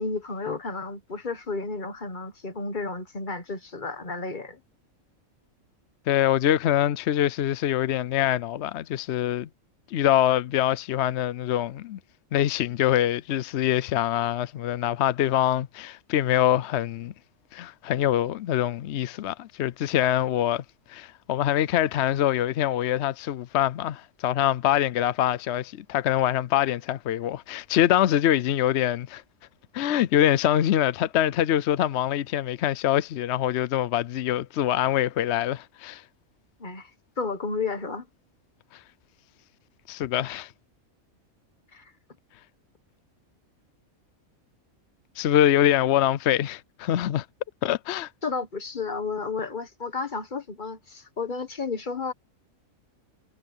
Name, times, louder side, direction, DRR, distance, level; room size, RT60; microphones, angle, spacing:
voice 1, 0.0-4.6 36.6-36.9 37.2-38.1 41.7-41.9 48.2-52.1, left 4 dB, 35° left, 1.6 m, -32 dB
voice 2, 6.1-9.5 9.9-12.0 12.3-17.1 17.5-20.6 20.9-29.2 29.7-36.0 38.7-38.8 39.9-40.5 45.2-47.3 47.6-48.1, left 12 dB, 65° left, 0.8 m, -24 dB
omnidirectional pair, 1.4 m